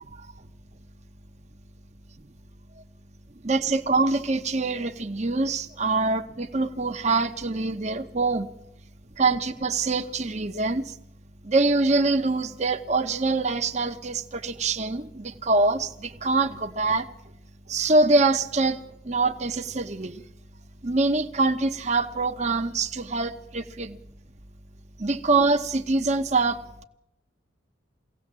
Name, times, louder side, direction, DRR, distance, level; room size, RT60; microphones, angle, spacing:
voice 1, 3.4-8.5 9.2-11.0 11.4-17.1 17.7-18.8 19.0-20.2 20.8-24.0 25.0-26.8, right 3 dB, 35° right, 7 dB, 1.0 m, -24 dB
23.5 x 17.0 x 7.5 m, 0.81 s
head